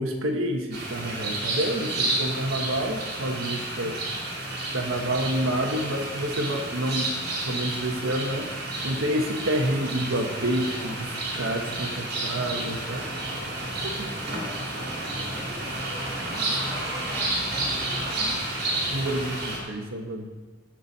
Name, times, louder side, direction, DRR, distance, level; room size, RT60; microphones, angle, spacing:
voice 1, 0.0-4.0 4.7-7.1 7.4-13.1 14.0-14.1 18.9-20.3, right 1 dB, 80° right, 2 dB, 1.2 m, -28 dB
sound 1, 0.7-19.6, right 2 dB, 50° right, 2.9 m, -31 dB
voice 2, 14.2-14.7 15.2-18.4, left 1 dB, 10° right, -3 dB, 1.4 m, -43 dB
16.0 x 6.1 x 4.1 m, 1.4 s
head